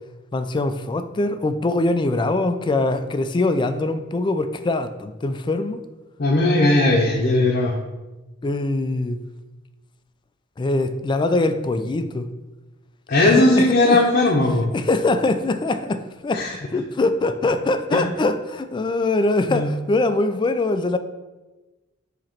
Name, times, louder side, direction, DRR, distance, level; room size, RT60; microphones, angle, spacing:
voice 1, 0.3-5.8 8.4-9.2 10.6-12.3 13.2-14.0 14.7-16.4 16.7-21.0, left 2 dB, 25° left, 10 dB, 0.3 m, -22 dB
voice 2, 6.2-7.7 13.1-14.7 16.3-16.5 17.9-18.0 19.5-19.7, left 2 dB, 50° left, -2 dB, 0.7 m, -18 dB
7.5 x 2.9 x 4.4 m, 1.1 s
head